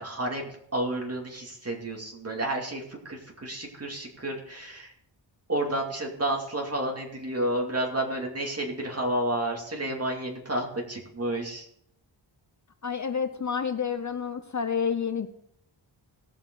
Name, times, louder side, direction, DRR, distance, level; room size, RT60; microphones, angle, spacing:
voice 1, 0.0-4.9 5.5-11.7, right 1 dB, 30° right, 1 dB, 2.5 m, -31 dB
voice 2, 12.8-15.3, left 6 dB, 40° left, 9 dB, 0.6 m, -29 dB
18.0 x 7.0 x 3.9 m, 0.72 s
wide cardioid pair, 105°, 46 cm